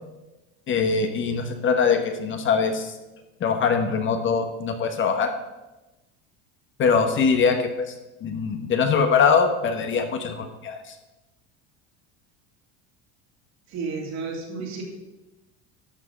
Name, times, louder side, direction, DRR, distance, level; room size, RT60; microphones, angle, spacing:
voice 1, 0.7-2.9 3.4-5.3 6.8-7.9 8.2-10.9, left 5 dB, 35° left, 6 dB, 1.2 m, -22 dB
voice 2, 13.7-14.8, right 4 dB, 55° right, -1 dB, 3.2 m, -32 dB
12.0 x 6.2 x 5.4 m, 1.0 s
supercardioid pair, 125°, 33 cm